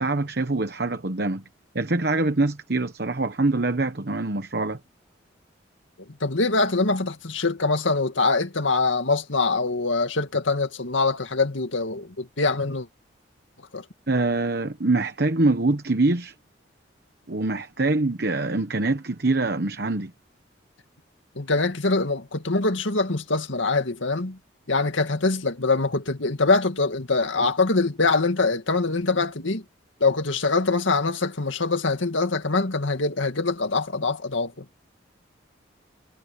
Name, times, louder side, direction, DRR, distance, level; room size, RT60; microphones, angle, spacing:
voice 1, 0.0-1.4 1.7-4.8 14.1-16.3 17.3-20.1, right 2 dB, 55° right, 1.1 m, -24 dB
voice 2, 6.2-12.9 13.7-13.8 21.4-24.4 24.7-29.6 30.0-34.7, left 3 dB, 85° left, 2.1 m, -24 dB
head